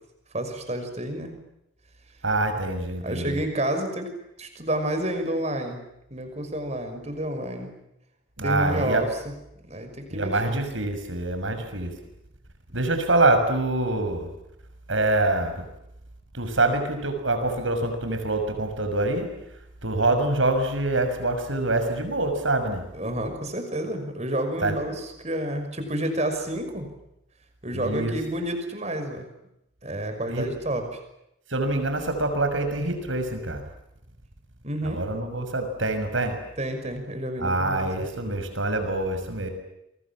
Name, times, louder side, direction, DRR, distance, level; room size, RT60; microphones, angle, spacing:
voice 1, 0.3-1.3 3.0-4.1 4.4-5.9 6.1-7.7 8.4-9.3 9.7-10.6 22.9-26.9 27.6-29.3 29.8-31.0 34.6-35.0 36.6-37.9, right 1 dB, 35° right, 7 dB, 5.9 m, -30 dB
voice 2, 2.2-3.4 8.4-9.0 10.1-11.9 12.7-14.3 14.9-15.6 16.3-19.3 19.8-22.8 24.6-24.8 27.7-28.1 30.3-30.5 31.5-33.6 34.8-36.4 37.4-39.5, right 2 dB, 75° right, 7 dB, 6.4 m, -25 dB
30.0 x 24.0 x 7.4 m, 0.84 s
head